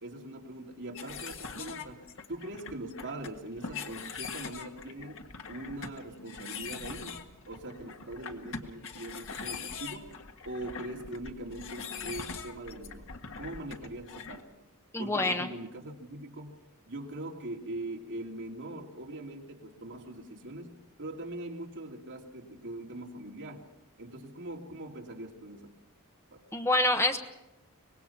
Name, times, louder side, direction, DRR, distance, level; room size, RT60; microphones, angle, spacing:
voice 1, 0.0-5.2 5.5-10.1 10.4-13.1 13.4-14.7 15.0-16.6 16.9-23.6 24.0-25.7 26.3-26.4, right 1 dB, 60° right, 0 dB, 2.7 m, -42 dB
sound 1, 0.9-14.4, left 5 dB, 65° left, 1.6 m, -42 dB
voice 2, 14.9-15.5 26.5-27.2, left 2 dB, 10° left, 6 dB, 1.1 m, -26 dB
24.5 x 20.0 x 5.8 m, 0.92 s
head